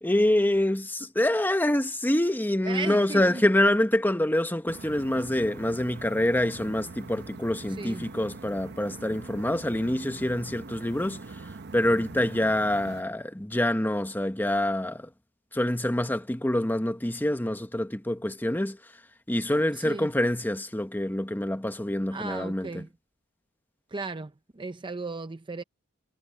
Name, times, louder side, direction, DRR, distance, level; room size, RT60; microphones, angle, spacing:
voice 1, 0.0-15.1 15.5-18.8 19.3-22.8, left 1 dB, 10° left, 1.1 m, -26 dB
voice 2, 2.6-3.4 7.7-8.1 19.7-20.1 22.1-22.9 23.9-25.6, right 3 dB, 20° right, 0.6 m, -36 dB
sound 1, 4.7-13.0, right 3 dB, 50° right, 0.8 m, -43 dB
head